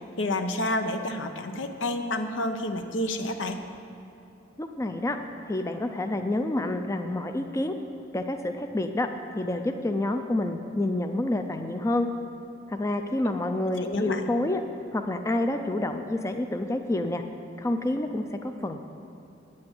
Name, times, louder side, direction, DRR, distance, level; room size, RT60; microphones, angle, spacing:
voice 1, 0.2-3.6 13.2-13.3 13.8-14.2, left 1 dB, 80° left, 6 dB, 0.8 m, -29 dB
voice 2, 4.6-5.2 5.5-7.8 8.1-9.1 9.4-12.1 12.7-14.6 14.9-17.2 17.6-18.9, left 1 dB, 15° left, 6 dB, 0.4 m, -28 dB
8.7 x 8.5 x 7.7 m, 2.9 s
head